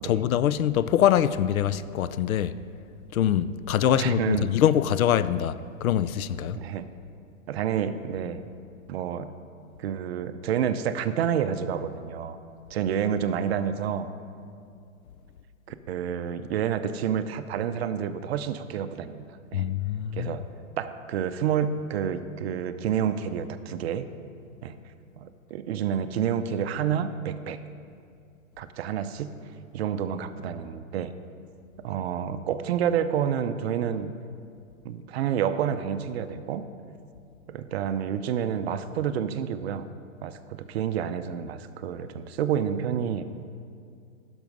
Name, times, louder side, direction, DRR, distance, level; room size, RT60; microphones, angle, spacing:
voice 1, 0.0-2.6 3.1-6.6 19.5-20.4, left 10 dB, 85° left, 0.5 m, -24 dB
voice 2, 4.0-4.5 6.6-6.9 7.5-8.4 8.9-9.3 9.8-12.4 12.7-14.1 15.7-19.2 19.5-19.7 20.1-20.4 20.8-24.1 24.6-24.8 25.2-27.6 28.6-29.3 29.7-31.1 31.8-34.1 34.8-36.6 37.5-39.9 40.2-43.2, right 8 dB, 50° right, 0.6 m, -29 dB
10.5 x 6.2 x 5.3 m
hypercardioid pair, 140°, 41 cm